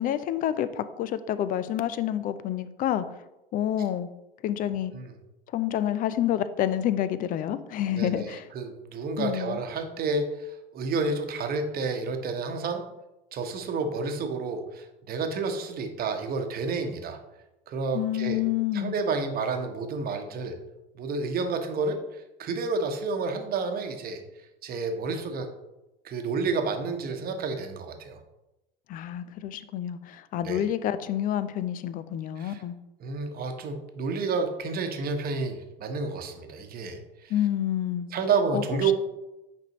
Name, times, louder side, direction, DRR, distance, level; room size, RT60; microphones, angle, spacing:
voice 1, 0.0-3.0 3.5-4.1 4.4-4.9 5.5-8.5 9.2-9.6 17.9-18.9 28.9-32.8 37.3-38.1 38.5-38.9, left 11 dB, 30° left, 14 dB, 0.5 m, -28 dB
voice 2, 7.9-12.8 13.3-17.2 17.7-18.4 18.7-20.6 20.9-24.2 24.6-25.5 26.0-28.2 30.4-30.6 32.4-32.6 33.0-37.3 38.1-38.9, right 4 dB, 30° right, 5 dB, 1.1 m, -30 dB
9.0 x 5.3 x 3.0 m, 0.96 s
figure-of-eight pair, 80°, 29 cm